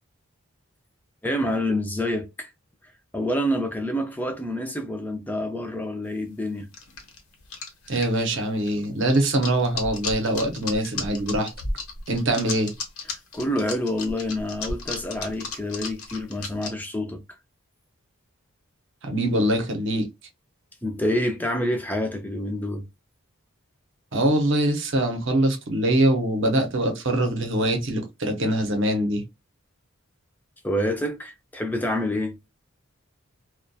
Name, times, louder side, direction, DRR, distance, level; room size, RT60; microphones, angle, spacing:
voice 1, 1.2-2.5 3.1-6.7 13.3-17.2 20.8-22.8 30.6-32.4, left 1 dB, 10° left, 0.3 m, -27 dB
sound 1, 6.7-16.7, left 3 dB, 80° left, 0.8 m, -33 dB
voice 2, 7.9-11.5 12.1-12.7 19.0-20.1 24.1-29.2, right 1 dB, 55° right, 0.6 m, -23 dB
2.2 x 2.2 x 2.5 m
head